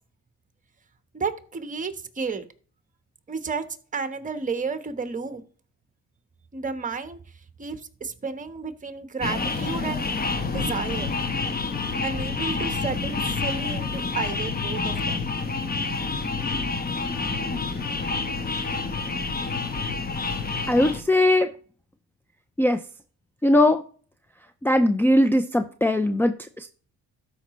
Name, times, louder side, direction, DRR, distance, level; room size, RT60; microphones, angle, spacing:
voice 1, 1.1-2.4 3.3-3.6 3.9-5.4 6.5-7.2 7.6-10.0 10.5-11.1 12.0-15.2, right 4 dB, 25° right, 1.2 m, -32 dB
sound 1, 9.2-21.0, left 4 dB, 30° left, 1.2 m, -28 dB
voice 2, 20.7-21.5 22.6-22.8 23.4-23.8 24.6-26.7, left 1 dB, 5° left, 0.5 m, -20 dB
12.5 x 5.0 x 3.1 m
cardioid pair, 90°, 30 cm